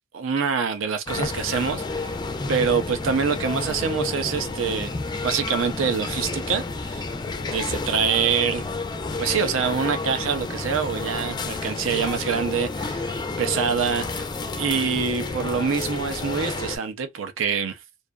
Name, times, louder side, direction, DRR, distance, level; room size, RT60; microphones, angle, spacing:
voice 1, 0.1-2.1 2.5-4.9 5.2-7.1 7.4-8.6 9.2-13.1 13.4-14.2 14.6-17.8, right 6 dB, 75° right, 0.5 m, -25 dB
sound 1, 1.1-16.8, left 3 dB, 20° left, 0.3 m, -30 dB
2.6 x 2.4 x 2.2 m
head